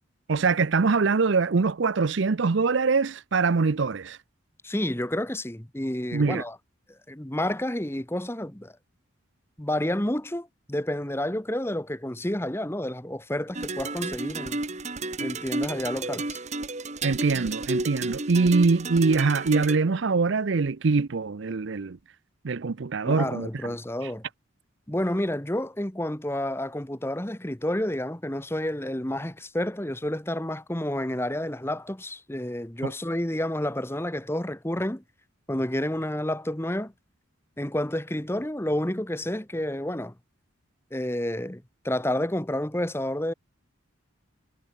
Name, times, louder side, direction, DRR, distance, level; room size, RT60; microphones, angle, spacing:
voice 1, 0.3-4.2 6.1-6.4 17.0-22.0 22.4-23.5 24.0-24.1 32.8-32.9, right 4 dB, 60° right, 0.6 m, -23 dB
voice 2, 4.6-6.6 7.1-8.7 9.6-14.6 15.2-16.4 23.0-24.2 24.9-35.0 35.5-36.9 37.6-40.1 40.9-43.3, left 1 dB, 10° left, 1.2 m, -30 dB
sound 1, 13.5-19.8, right 2 dB, 35° right, 1.8 m, -32 dB
head